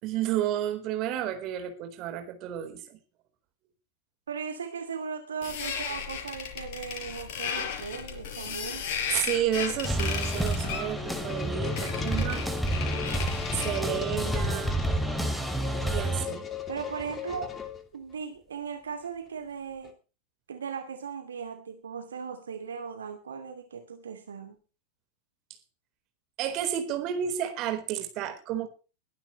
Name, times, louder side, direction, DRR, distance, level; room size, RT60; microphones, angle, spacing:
voice 1, 0.0-3.0 9.1-12.5 13.5-14.8 15.9-16.5 26.4-28.7, right 11 dB, 40° right, 8 dB, 4.1 m, -31 dB
voice 2, 4.3-8.9 16.7-17.5 17.9-20.0 20.5-24.6, right 6 dB, 70° right, 6 dB, 2.5 m, -37 dB
sound 1, 5.4-13.9, left 7 dB, 50° left, 5.6 m, -35 dB
sound 2, 9.8-16.3, right 1 dB, ahead, 3.1 m, -30 dB
sound 3, 10.6-18.1, left 6 dB, 20° left, 2.7 m, -37 dB
22.0 x 11.5 x 3.1 m, 0.34 s
figure-of-eight pair, 90°, 0 cm